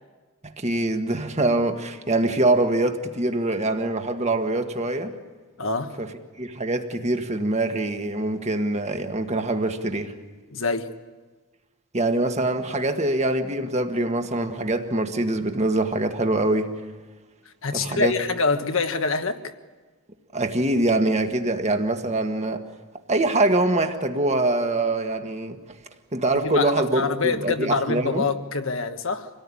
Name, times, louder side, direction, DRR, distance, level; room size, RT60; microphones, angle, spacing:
voice 1, 0.6-5.1 6.0-6.1 6.4-10.1 11.9-16.7 17.7-18.1 20.3-22.6 23.1-25.6 26.1-28.2, right 2 dB, 30° right, 1.6 m, -24 dB
voice 2, 5.6-6.0 10.5-10.9 17.6-19.5 26.4-29.3, left 4 dB, 65° left, 1.4 m, -25 dB
26.0 x 18.0 x 9.9 m
head